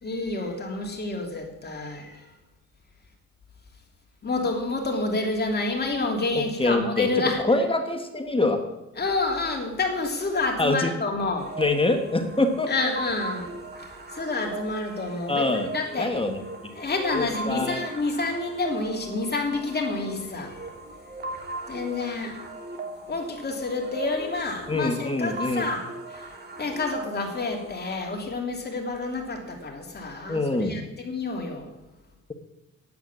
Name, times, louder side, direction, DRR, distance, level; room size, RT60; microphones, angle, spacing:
voice 1, 0.0-2.3 4.2-7.4 9.0-11.5 12.7-16.1 16.7-20.6 21.7-22.4 23.1-26.3 26.6-31.7, left 3 dB, 35° left, 1 dB, 3.1 m, -29 dB
voice 2, 6.3-7.1 7.4-8.6 10.6-10.9 11.6-12.7 15.3-15.7 16.0-16.4 17.1-17.8 24.7-25.6 30.3-30.8, left 2 dB, 20° left, 5 dB, 1.5 m, -24 dB
sound 1, 11.4-27.9, right 2 dB, 35° right, 2.7 m, -38 dB
9.6 x 8.2 x 9.6 m, 0.97 s
cardioid pair, 90°, 30 cm